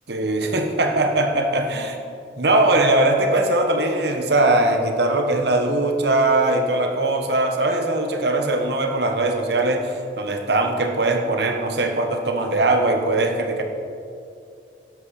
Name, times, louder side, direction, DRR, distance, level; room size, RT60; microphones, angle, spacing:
voice 1, 0.1-2.0 2.4-13.6, right 2 dB, 70° right, 4 dB, 1.4 m, -20 dB
12.5 x 11.5 x 4.3 m, 2.6 s
head